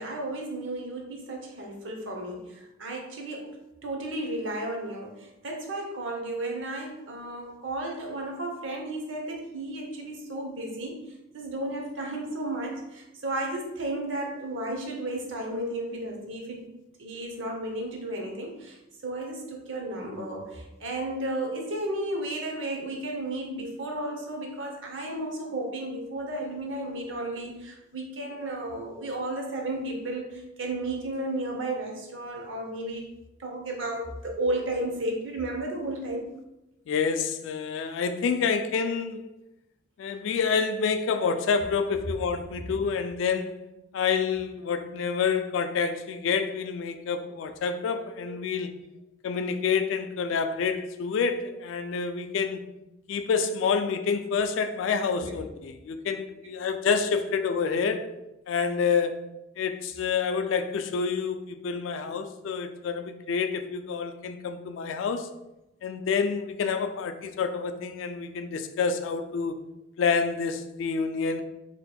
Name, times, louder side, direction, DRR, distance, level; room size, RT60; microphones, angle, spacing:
voice 1, 0.0-3.6 3.8-11.0 11.3-16.7 17.0-18.8 19.0-33.0 33.4-36.3 42.7-42.8 55.2-55.3 60.0-60.1, right 1 dB, 80° right, 1 dB, 0.8 m, -33 dB
voice 2, 36.9-39.2 40.0-43.6 43.9-48.7 49.2-52.6 53.1-58.0 58.5-59.2 59.6-65.3 65.8-69.6 70.0-71.4, left 5 dB, 80° left, 7 dB, 0.3 m, -28 dB
4.1 x 3.0 x 2.2 m, 0.94 s
head